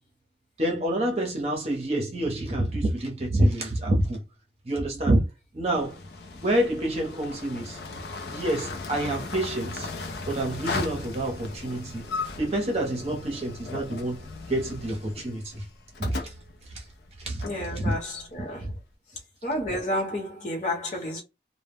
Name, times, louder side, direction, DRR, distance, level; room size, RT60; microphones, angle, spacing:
voice 1, 0.6-4.2 4.6-5.3 5.5-6.0 6.4-7.8 8.3-9.9 10.3-15.6 16.0-16.3 16.7-16.8 17.2-17.4 17.8-18.0 18.4-18.7, right 1 dB, 35° right, 0.7 m, -27 dB
sound 1, 5.7-18.7, left 3 dB, 65° left, 0.5 m, -37 dB
voice 2, 17.4-18.6 19.4-21.2, left 1 dB, 40° left, 1.0 m, -30 dB
2.1 x 2.1 x 3.4 m
head